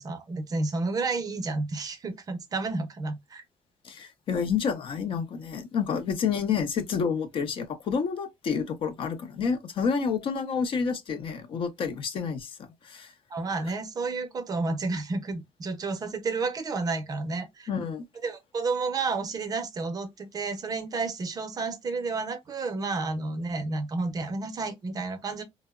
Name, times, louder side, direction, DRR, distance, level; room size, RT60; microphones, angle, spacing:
voice 1, 0.0-3.4 13.3-17.7 18.2-25.4, right 3 dB, 30° right, 0.5 m, -31 dB
voice 2, 3.8-12.5 12.8-13.1 17.7-18.0, left 6 dB, 45° left, 0.5 m, -29 dB
3.5 x 2.0 x 2.2 m
cardioid pair, 155°, 12 cm